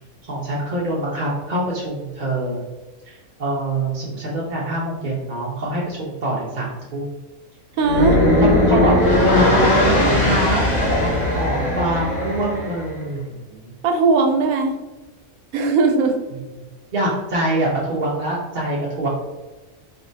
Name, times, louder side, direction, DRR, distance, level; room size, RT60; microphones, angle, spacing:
voice 1, 0.2-2.6 3.0-7.2 8.4-13.8 16.9-19.1, right 1 dB, 45° right, -5 dB, 0.7 m, -25 dB
sound 1, 7.8-12.9, left 1 dB, 80° left, 1.4 m, -18 dB
voice 2, 7.8-8.2 13.8-14.8 15.5-16.2, right 3 dB, 90° right, 4 dB, 1.1 m, -18 dB
4.3 x 3.2 x 2.7 m, 1.1 s
omnidirectional pair, 1.4 m